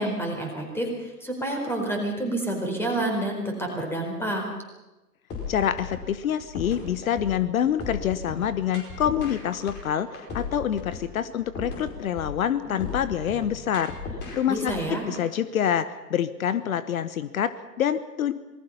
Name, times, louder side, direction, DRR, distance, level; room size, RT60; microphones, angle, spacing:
voice 1, 0.0-4.4 14.5-15.1, right 1 dB, 5° left, 2 dB, 4.5 m, -28 dB
sound 1, 5.3-15.2, left 4 dB, 20° left, 5.0 m, -36 dB
voice 2, 5.5-13.9 14.3-18.3, left 9 dB, 55° left, 14 dB, 1.1 m, -26 dB
26.5 x 19.5 x 5.6 m, 1.1 s
hypercardioid pair, 130°, 49 cm